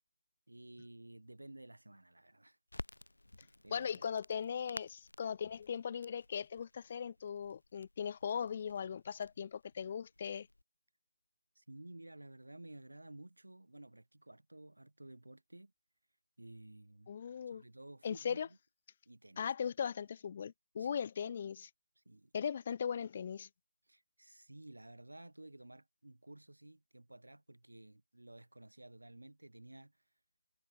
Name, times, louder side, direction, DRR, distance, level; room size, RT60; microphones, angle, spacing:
voice 1, 0.5-2.6 3.4-4.0 11.5-15.7 16.4-17.1 17.5-18.6 19.0-19.5 20.8-21.0 22.0-22.3 23.9-30.0, right 1 dB, 85° right, 3.3 m, -54 dB
Crackle, 2.7-10.6, left 1 dB, 85° left, 3.0 m, -54 dB
voice 2, 3.7-10.5 17.1-17.6 18.0-18.5 19.4-21.7 22.3-23.5, left 7 dB, 20° left, 1.0 m, -39 dB
figure-of-eight pair, 170°, 0 cm